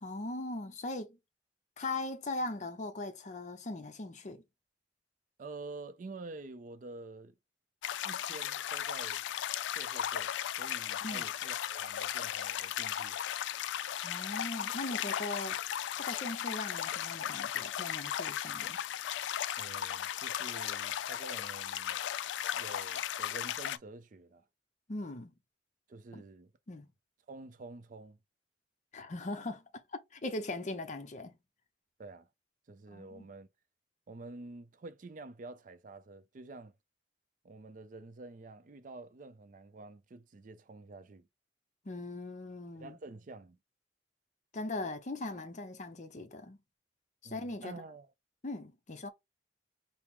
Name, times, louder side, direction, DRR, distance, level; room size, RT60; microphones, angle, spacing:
voice 1, 0.0-1.2 1.8-4.4 11.0-11.3 14.0-15.6 16.0-18.8 24.9-25.3 26.1-26.2 26.7-26.9 28.9-29.8 30.1-31.4 32.9-33.3 41.8-43.0 44.5-46.6 47.2-47.8 48.4-49.1, left 2 dB, 40° left, 0.7 m, -40 dB
voice 2, 5.4-7.3 8.0-9.2 9.8-13.2 19.6-22.0 22.5-24.5 25.9-26.5 27.3-28.2 32.0-32.3 32.7-33.5 34.1-36.7 37.4-41.3 42.7-43.6 47.2-48.1, right 3 dB, 45° right, 0.4 m, -48 dB
sound 1, 7.8-23.8, left 10 dB, 90° left, 0.3 m, -36 dB
4.4 x 2.0 x 3.5 m
head